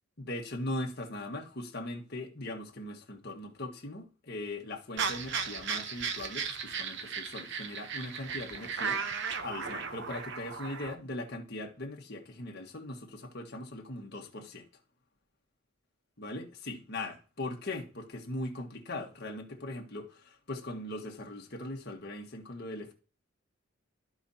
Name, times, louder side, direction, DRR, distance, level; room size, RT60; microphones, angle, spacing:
voice 1, 0.2-14.6 16.2-22.9, left 1 dB, 50° left, 1.6 m, -40 dB
sound 1, 5.0-10.9, right 6 dB, 60° right, 0.9 m, -36 dB
14.0 x 5.1 x 2.8 m
head